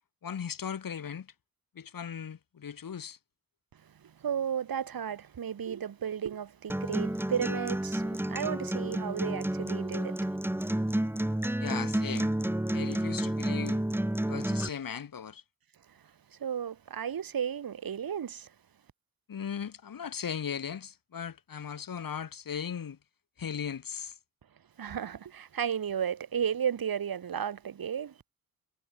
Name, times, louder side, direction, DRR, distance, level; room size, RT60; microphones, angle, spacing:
voice 1, 0.2-1.3 1.8-3.2 9.9-10.0 11.6-12.3 12.7-13.8 14.3-15.4 19.3-23.0 23.4-24.1, left 7 dB, 65° left, 4.6 m, -37 dB
voice 2, 4.0-10.2 16.4-18.5 24.8-28.1, right 8 dB, 70° right, 6.0 m, -33 dB
Acoustic guitar, 6.7-14.7, right 1 dB, 5° right, 1.7 m, -30 dB
cardioid pair, 55°, 36 cm